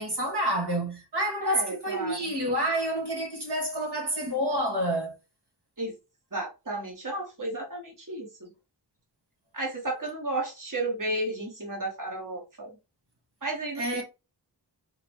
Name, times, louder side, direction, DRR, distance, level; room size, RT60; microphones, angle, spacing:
voice 1, 0.0-5.1 13.8-14.0, right 1 dB, 65° right, 1.8 m, -28 dB
voice 2, 1.4-2.3 5.8-5.9 6.3-8.5 9.5-12.7 13.4-14.0, right 2 dB, 45° right, 1.6 m, -33 dB
4.8 x 2.9 x 3.6 m
wide cardioid pair, 45°, 42 cm